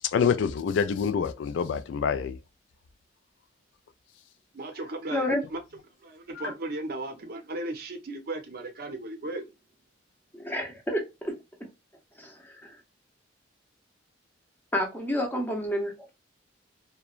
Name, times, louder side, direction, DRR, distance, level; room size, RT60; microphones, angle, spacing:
voice 1, 0.1-2.3, left 6 dB, 70° left, 0.3 m, -26 dB
voice 2, 4.5-5.6 6.0-9.4, right 2 dB, 55° right, 0.5 m, -36 dB
voice 3, 10.3-11.4 12.2-12.8 14.7-16.1, equal, 10° left, 0.6 m, -30 dB
2.9 x 2.1 x 2.3 m
head